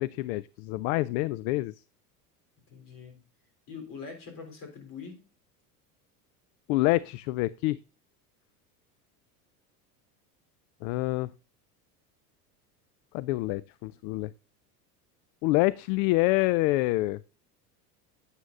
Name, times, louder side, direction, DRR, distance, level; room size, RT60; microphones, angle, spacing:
voice 1, 0.0-1.7 6.7-7.8 10.8-11.3 13.1-14.3 15.4-17.2, left 19 dB, 60° left, 0.5 m, -27 dB
voice 2, 2.6-3.2 3.7-5.2, left 5 dB, 45° left, 3.5 m, -43 dB
9.3 x 9.2 x 2.5 m
hypercardioid pair, 85°, 47 cm